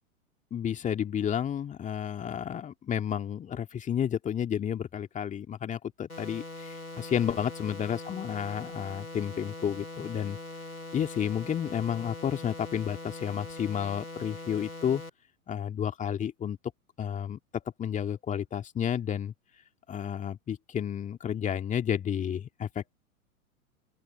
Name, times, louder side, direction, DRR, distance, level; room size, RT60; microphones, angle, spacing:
voice 1, 0.5-10.4 10.9-15.0 15.5-16.6 17.0-17.4 17.8-19.3 19.9-22.9, left 9 dB, 15° left, 2.3 m, -31 dB
sound 1, 6.1-15.1, left 2 dB, 85° left, 7.9 m, -42 dB
open air
figure-of-eight pair, 105°, 43 cm